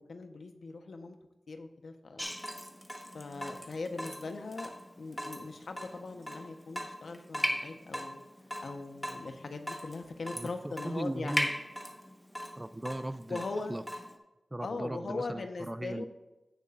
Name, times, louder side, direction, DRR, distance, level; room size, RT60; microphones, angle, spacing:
voice 1, 0.1-1.2 1.5-2.3 3.1-4.7 5.0-8.2 8.6-11.6 13.3-13.8 14.6-16.1, left 3 dB, 80° left, 6 dB, 1.0 m, -40 dB
Water tap faucet / Drip, 2.2-14.2, equal, 5° left, 1.2 m, -39 dB
voice 2, 10.4-11.5 12.5-13.4 13.7-13.8 14.5-16.0, right 1 dB, 20° right, 12 dB, 0.5 m, -38 dB
16.5 x 6.9 x 2.5 m, 1.0 s
wide cardioid pair, 65°, 0 cm